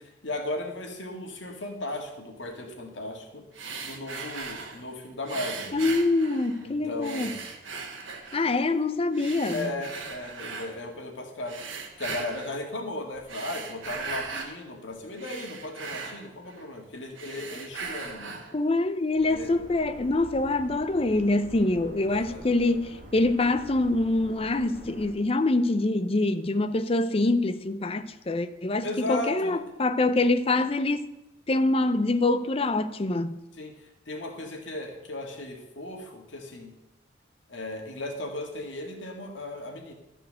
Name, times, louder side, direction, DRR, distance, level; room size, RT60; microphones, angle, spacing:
voice 1, 0.0-3.4 3.8-5.8 6.6-7.4 9.5-11.6 12.0-18.4 19.3-19.5 22.1-22.5 28.8-29.6 33.5-36.7 37.5-39.9, left 2 dB, 75° left, 1.9 m, -36 dB
sound 1, 3.5-4.8 5.3-6.7 7.0-8.6 9.1-10.7 11.4-12.6 13.2-14.6 14.9-16.8 17.1-18.6, right 5 dB, 90° right, 1.4 m, -38 dB
voice 2, 5.7-7.3 8.3-9.7 18.5-31.1 31.5-33.4, left 2 dB, 30° left, 0.5 m, -25 dB
sound 2, 19.1-25.1, right 1 dB, 50° right, 1.7 m, -46 dB
13.0 x 4.5 x 7.5 m
head